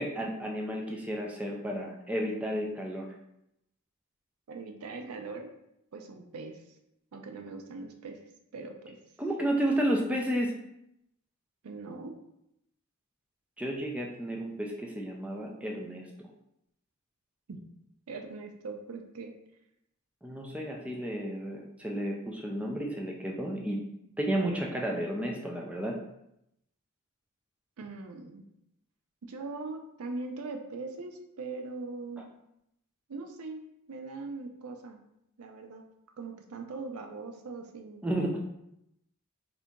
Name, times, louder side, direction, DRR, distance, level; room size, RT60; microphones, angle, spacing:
voice 1, 0.0-3.1 9.2-10.5 13.6-16.0 20.2-23.8 24.2-26.0 38.0-38.4, right 1 dB, 5° right, -1 dB, 0.3 m, -32 dB
voice 2, 4.5-5.5 5.9-6.6 7.1-8.2 8.5-9.0 11.6-12.1 17.5-17.6 18.1-19.3 27.8-28.4 29.2-32.3 33.1-35.0 35.4-35.8 36.2-38.0, right 3 dB, 80° right, 4 dB, 0.4 m, -41 dB
2.8 x 2.5 x 3.5 m, 0.81 s
head